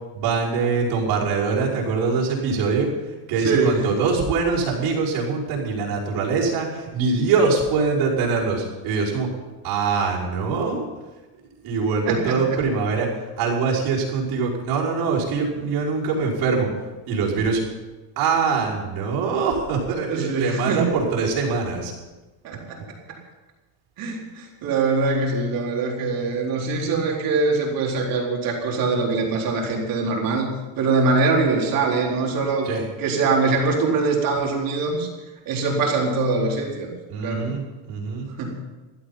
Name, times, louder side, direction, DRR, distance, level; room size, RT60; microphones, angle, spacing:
voice 1, 0.1-2.9 3.3-9.3 9.6-10.9 11.6-16.7 17.1-17.6 18.2-21.9 32.6-32.8 37.1-38.3, right 4 dB, 70° right, -5 dB, 5.5 m, -23 dB
voice 2, 3.4-3.9 12.1-12.4 20.1-20.8 22.4-22.8 24.0-32.7 33.0-35.1 35.5-36.9 37.2-37.5 38.4-38.5, right 3 dB, 55° right, -1 dB, 4.1 m, -23 dB
16.0 x 12.0 x 5.8 m, 1.2 s
cardioid pair, 140°, 41 cm